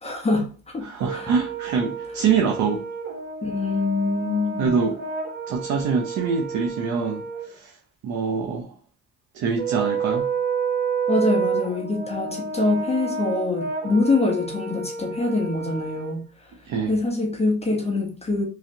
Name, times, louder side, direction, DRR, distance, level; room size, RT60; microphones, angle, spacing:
voice 1, 0.0-0.8 1.1-1.3 3.4-4.8 11.1-16.5 16.9-18.5, left 2 dB, 20° left, 0.8 m, -24 dB
voice 2, 0.8-2.8 4.6-5.0 5.5-7.8 8.0-8.7 9.3-10.3 16.6-16.9, right 6 dB, 75° right, 0.6 m, -24 dB
Brass instrument, 1.0-7.5 9.6-16.2, right 5 dB, 35° right, 0.9 m, -30 dB
3.1 x 2.8 x 2.7 m
cardioid pair, 90°, 30 cm